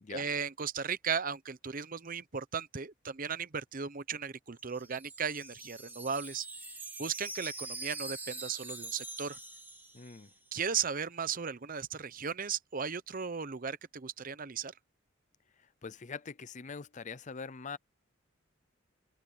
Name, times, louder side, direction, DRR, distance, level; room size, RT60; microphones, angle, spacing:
voice 1, 0.1-6.5 7.0-9.4 10.5-14.7, right 6 dB, 45° right, 0.8 m, -36 dB
Wind chime, 4.5-10.5, right 3 dB, 10° right, 2.0 m, -44 dB
voice 2, 9.9-10.3 15.6-17.8, left 5 dB, 40° left, 0.6 m, -43 dB
head